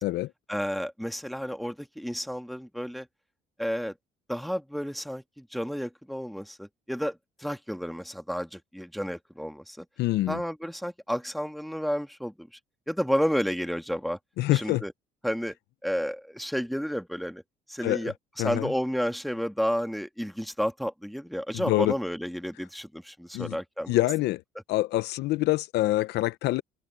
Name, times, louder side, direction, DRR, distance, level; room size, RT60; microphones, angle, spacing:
voice 1, 0.5-3.1 3.6-3.9 4.3-9.9 10.3-12.5 12.9-14.2 14.5-14.9 15.2-15.6 15.8-17.4 17.7-24.0, equal, ahead, 1.9 m, -31 dB
voice 2, 10.0-10.4 14.4-14.8 17.8-18.1 18.4-18.7 21.5-22.0 23.3-23.6 23.9-24.4 24.7-26.6, left 17 dB, 80° left, 0.7 m, -26 dB
cardioid pair, 110°, 17 cm